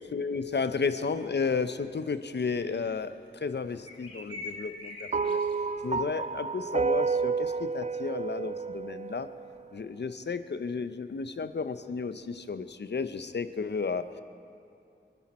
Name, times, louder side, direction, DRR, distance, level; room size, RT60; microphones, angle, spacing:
voice 1, 0.1-5.4 5.8-9.3 9.7-14.2, left 5 dB, 65° left, 11 dB, 0.7 m, -33 dB
sound 1, 1.0-1.1 2.4-2.8 3.8-5.5, left 2 dB, 30° left, 2.3 m, -43 dB
sound 2, 5.1-9.6, right 5 dB, 35° right, 0.4 m, -30 dB
26.5 x 10.0 x 4.3 m, 2.5 s
wide cardioid pair, 85°, 19 cm